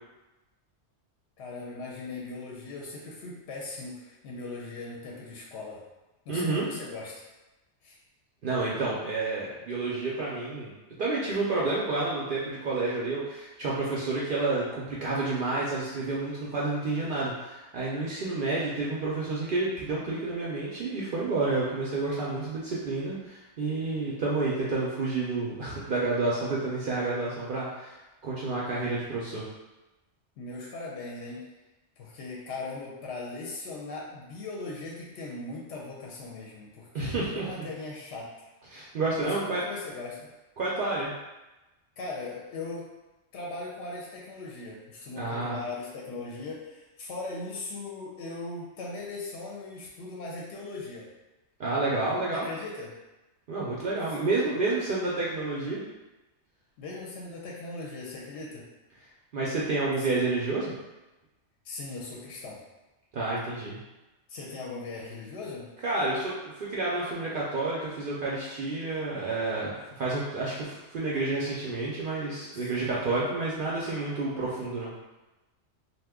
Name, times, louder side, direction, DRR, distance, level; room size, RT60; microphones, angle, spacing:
voice 1, 1.4-5.8 6.3-7.3 7.8-8.0 30.4-31.4 32.0-38.5 39.2-40.3 42.0-42.9 43.3-51.1 52.3-53.0 56.8-58.7 60.0-60.1 61.6-62.6 64.3-65.7 72.5-72.9, left 3 dB, 70° left, -3 dB, 0.8 m, -39 dB
voice 2, 6.3-6.7 8.4-10.7 11.0-29.4 36.9-37.7 38.7-39.6 40.6-41.1 45.2-45.6 51.6-52.5 53.5-55.8 59.3-60.7 63.1-63.8 65.8-74.9, right 3 dB, 60° right, -6 dB, 0.6 m, -30 dB
2.7 x 2.2 x 3.5 m, 1.1 s
omnidirectional pair, 1.3 m